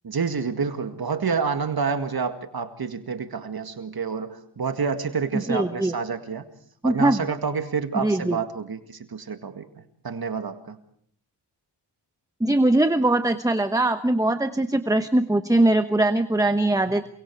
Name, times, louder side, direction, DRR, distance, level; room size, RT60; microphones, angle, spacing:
voice 1, 0.0-6.4 6.8-9.7 10.0-10.8, right 5 dB, 60° right, 7 dB, 2.0 m, -28 dB
voice 2, 5.3-5.9 6.8-7.2 7.9-8.4 12.4-17.1, right 1 dB, 10° right, 9 dB, 1.0 m, -21 dB
29.0 x 24.5 x 4.7 m, 0.62 s
wide cardioid pair, 105°, 42 cm